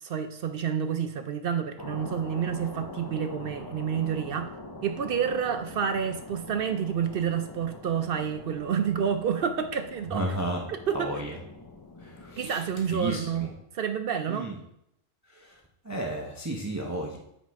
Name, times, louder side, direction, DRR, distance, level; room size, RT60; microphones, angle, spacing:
voice 1, 0.0-4.5 4.8-10.4 10.7-11.1 12.4-14.5, right 8 dB, 60° right, 7 dB, 0.6 m, -29 dB
sound 1, 1.8-13.6, left 2 dB, 25° left, 0.5 m, -44 dB
voice 2, 10.1-10.6 10.9-11.4 12.0-12.6 12.9-13.5 14.3-14.6 15.3-15.6 15.8-17.2, right 1 dB, 15° right, 0 dB, 0.7 m, -33 dB
8.3 x 4.0 x 4.7 m, 0.78 s
omnidirectional pair, 1.3 m